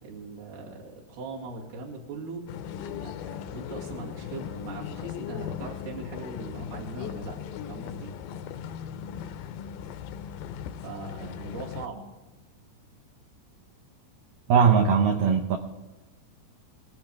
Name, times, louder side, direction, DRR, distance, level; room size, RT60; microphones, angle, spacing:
voice 1, 0.0-2.4 3.0-7.4 7.7-8.1 10.8-12.1, right 3 dB, 70° right, 4.1 m, -40 dB
sound 1, 2.5-11.9, left 8 dB, 80° left, 2.2 m, -38 dB
voice 2, 14.5-15.6, right 6 dB, 90° right, 1.9 m, -20 dB
19.5 x 14.0 x 3.5 m
omnidirectional pair, 4.9 m